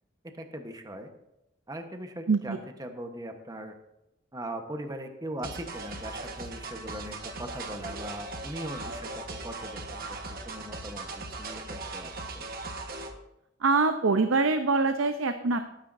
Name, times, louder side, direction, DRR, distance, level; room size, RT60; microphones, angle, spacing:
voice 1, 0.4-1.1 1.7-3.7 4.3-10.0 10.4-12.4, right 1 dB, 20° right, 5 dB, 1.1 m, -40 dB
voice 2, 2.3-2.6 13.6-15.6, right 3 dB, 80° right, 8 dB, 0.7 m, -24 dB
sound 1, 5.4-13.1, right 2 dB, 50° right, 1.3 m, -39 dB
18.5 x 10.0 x 2.7 m, 0.89 s
head